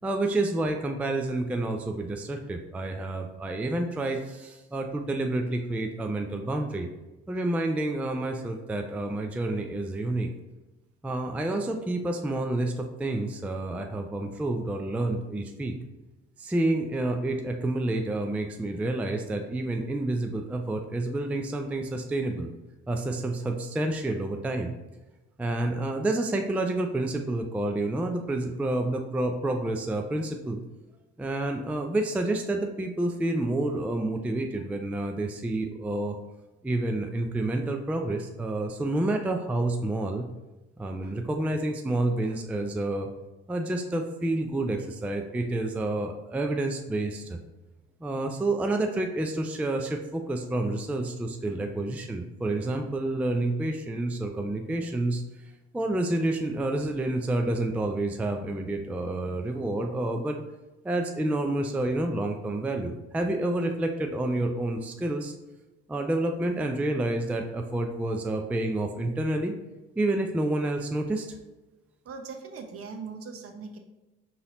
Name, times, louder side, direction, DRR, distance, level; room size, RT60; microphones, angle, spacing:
voice 1, 0.0-6.9 7.3-10.3 11.0-15.7 16.4-22.5 22.9-24.7 25.4-30.6 31.2-36.2 36.6-40.2 40.8-43.1 43.5-47.4 48.0-55.2 55.7-60.4 60.8-65.3 65.9-69.5 70.0-71.4, right 2 dB, 5° right, 4 dB, 0.4 m, -29 dB
voice 2, 72.0-73.8, right 5 dB, 45° right, 4 dB, 0.8 m, -40 dB
4.0 x 2.9 x 3.7 m, 1.1 s
hypercardioid pair, 60°, 31 cm